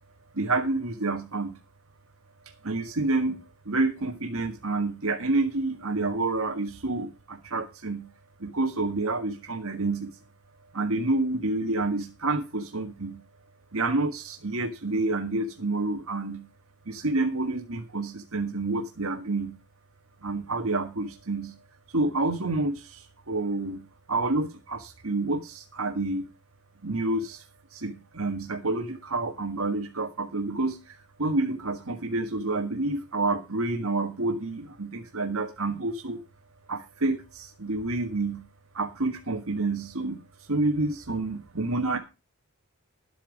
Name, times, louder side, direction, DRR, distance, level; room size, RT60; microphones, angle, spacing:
voice 1, 0.3-1.5 2.6-8.1 8.4-10.1 10.7-13.2 13.7-16.4 16.9-19.6 20.2-21.6 21.9-26.3 26.8-27.4 27.7-36.2 36.7-38.4 38.7-40.2 40.5-42.0, right 2 dB, 65° right, 4 dB, 1.8 m, -28 dB
13.0 x 8.9 x 5.2 m, 0.27 s
head